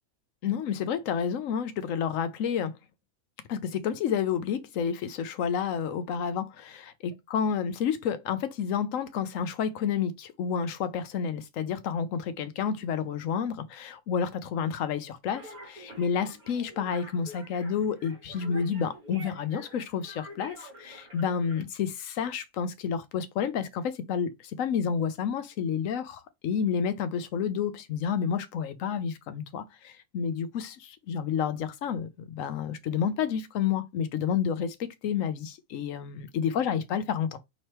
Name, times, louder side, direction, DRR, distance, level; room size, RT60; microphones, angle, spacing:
voice 1, 0.4-2.7 3.5-37.4, left 7 dB, 70° left, 1.0 m, -30 dB
sound 1, 15.3-21.6, equal, 85° right, 3.1 m, -47 dB
5.5 x 3.2 x 2.9 m
omnidirectional pair, 1.5 m